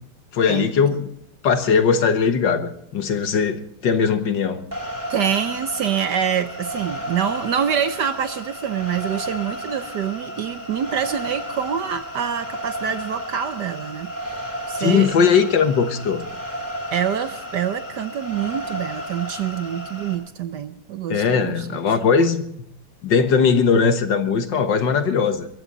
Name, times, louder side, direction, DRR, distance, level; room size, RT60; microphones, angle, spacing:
voice 1, 0.3-1.1 1.4-4.6 14.8-16.3 21.1-22.4 23.0-25.5, left 6 dB, 60° left, 9 dB, 1.8 m, -19 dB
sound 1, 4.7-20.1, equal, 10° right, 3.4 m, -33 dB
voice 2, 5.1-15.1 16.9-21.8, right 8 dB, 65° right, 11 dB, 1.2 m, -26 dB
22.0 x 15.0 x 4.0 m, 0.69 s
omnidirectional pair, 2.3 m